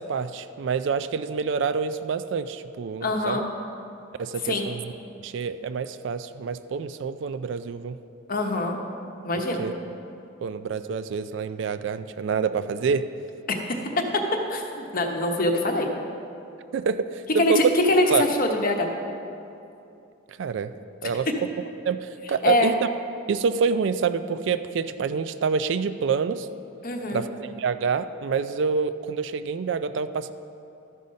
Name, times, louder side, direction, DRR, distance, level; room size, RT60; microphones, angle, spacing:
voice 1, 0.0-3.4 4.2-4.9 5.2-8.0 9.3-9.7 10.4-13.1 16.7-17.7 18.1-18.3 20.3-20.7 21.0-21.3 21.8-22.8 23.3-26.5 27.1-30.3, right 5 dB, 60° right, 11 dB, 0.3 m, -27 dB
voice 2, 3.0-3.4 4.4-4.7 8.3-8.8 9.2-9.6 13.5-13.8 14.5-15.9 17.4-18.9 22.4-22.7 26.8-27.3, left 1 dB, 45° left, 3 dB, 0.9 m, -24 dB
13.0 x 5.5 x 5.2 m, 2.7 s
head